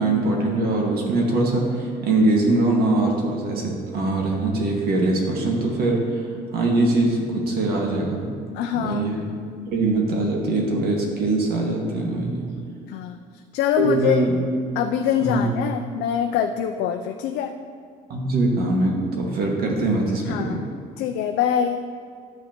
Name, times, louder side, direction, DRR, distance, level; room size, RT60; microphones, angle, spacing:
voice 1, 0.0-6.0 6.5-8.3 8.7-9.2 9.7-12.5 13.8-14.3 15.2-15.5 18.1-20.6, right 2 dB, 65° right, -1 dB, 1.8 m, -22 dB
voice 2, 8.5-9.0 12.9-13.2 13.5-14.2 14.8-17.5 20.3-20.7 21.0-21.8, left 9 dB, 85° left, 4 dB, 0.4 m, -24 dB
12.0 x 6.4 x 3.0 m, 2.2 s
cardioid pair, 110°, 17 cm